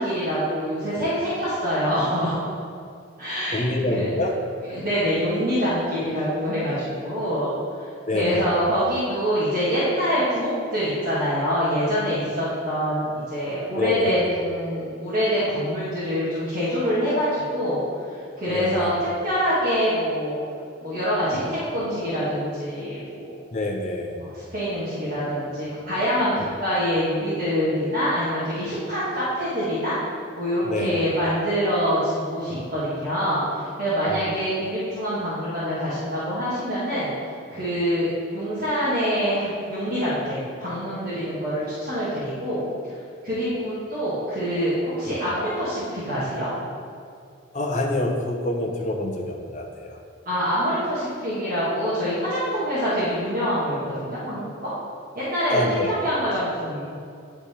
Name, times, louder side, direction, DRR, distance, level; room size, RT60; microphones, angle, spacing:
voice 1, 0.0-2.3 3.2-4.1 4.7-7.9 8.1-17.8 18.1-18.9 19.2-20.4 20.8-23.4 24.2-30.0 30.4-37.1 37.5-42.6 43.2-46.5 50.2-54.7 55.1-56.8, equal, 45° right, -11 dB, 1.4 m, -25 dB
voice 2, 3.5-4.3 8.1-8.5 13.7-14.2 18.5-19.0 23.5-24.2 30.6-30.9 34.0-34.2 47.5-50.0 55.5-55.9, left 1 dB, 35° left, 0 dB, 0.7 m, -26 dB
9.5 x 3.4 x 4.3 m, 2.4 s
head